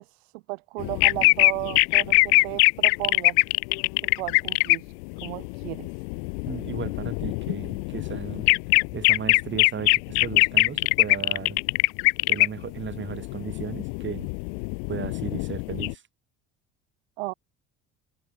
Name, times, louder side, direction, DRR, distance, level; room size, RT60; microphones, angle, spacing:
voice 1, 0.0-3.4 4.2-4.8 5.2-5.9 17.2-17.3, right 26 dB, 60° right, 0.9 m, -34 dB
sound 1, 0.8-4.8 5.0-15.9, left 40 dB or more, 55° left, 0.8 m, -23 dB
voice 2, 6.5-8.5 8.9-11.6 12.3-14.3 14.9-16.0, right 7 dB, 30° right, 3.3 m, -35 dB
figure-of-eight pair, 60°, 35 cm